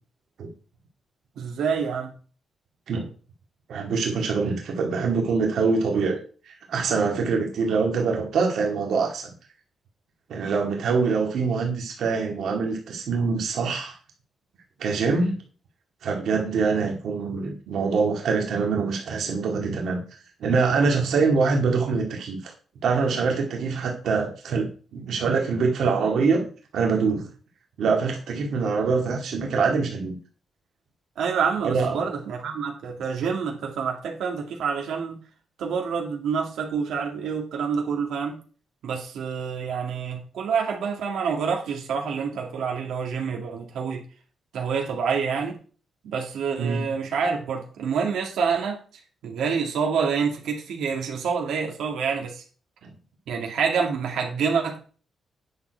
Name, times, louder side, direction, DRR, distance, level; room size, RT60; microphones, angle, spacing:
voice 1, 1.4-2.1 31.2-35.2 35.6-38.4 38.8-44.0 44.5-45.5 46.0-48.8 49.2-52.4 53.3-54.8, right 6 dB, 85° right, 1 dB, 2.0 m, -27 dB
voice 2, 3.7-6.2 6.5-9.3 10.3-13.9 14.8-15.4 16.0-20.0 20.4-22.5 22.8-26.4 26.7-27.3 27.8-30.2 31.6-32.0 46.6-46.8 52.8-52.9, right 4 dB, 60° right, 1 dB, 2.0 m, -24 dB
9.5 x 6.4 x 4.5 m, 0.39 s
wide cardioid pair, 180°, 0 cm